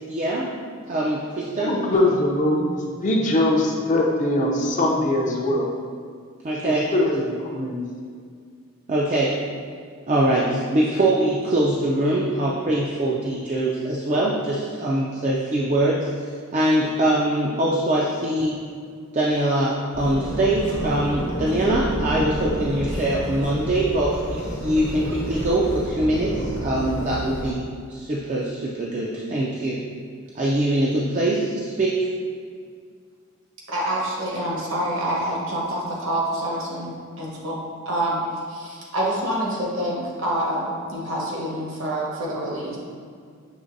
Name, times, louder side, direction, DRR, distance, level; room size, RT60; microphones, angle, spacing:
voice 1, 0.1-0.5 0.9-1.7 6.4-6.9 8.9-9.4 10.1-18.6 19.1-27.6 27.9-29.8 30.3-32.1, right 1 dB, 35° right, -4 dB, 0.3 m, -23 dB
voice 2, 1.6-5.7 6.6-7.8, left 1 dB, 35° left, -1 dB, 0.4 m, -22 dB
sound 1, 19.9-27.5, equal, 65° left, 1.0 m, -30 dB
voice 3, 33.7-38.2 38.5-42.8, right 1 dB, 70° right, -4 dB, 1.1 m, -27 dB
6.4 x 3.0 x 2.6 m, 2.1 s
head